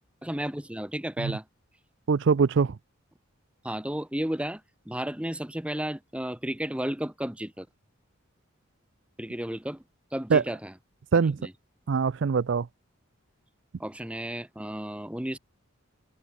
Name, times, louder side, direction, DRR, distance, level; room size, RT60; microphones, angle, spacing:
voice 1, 0.2-1.4 3.6-7.7 9.2-9.8 10.1-10.7 11.4-11.5 13.8-15.4, right 1 dB, 5° right, 1.1 m, -33 dB
voice 2, 2.1-2.8 10.3-10.4 11.1-11.4 11.9-12.7, right 5 dB, 60° right, 0.4 m, -23 dB
head